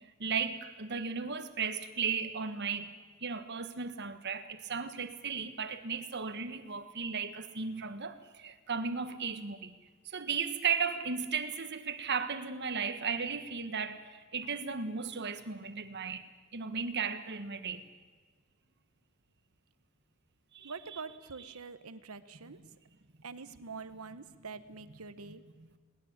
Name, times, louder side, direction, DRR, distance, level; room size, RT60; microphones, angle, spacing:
voice 1, 0.0-2.9 3.2-9.7 10.0-16.2 16.5-17.8 20.5-21.0 22.5-22.6 23.5-23.8 25.3-25.8, right 5 dB, 50° right, 1.5 m, -36 dB
voice 2, 20.6-22.6 23.2-25.4, right 4 dB, 80° right, 1.2 m, -45 dB
21.5 x 19.5 x 8.9 m
head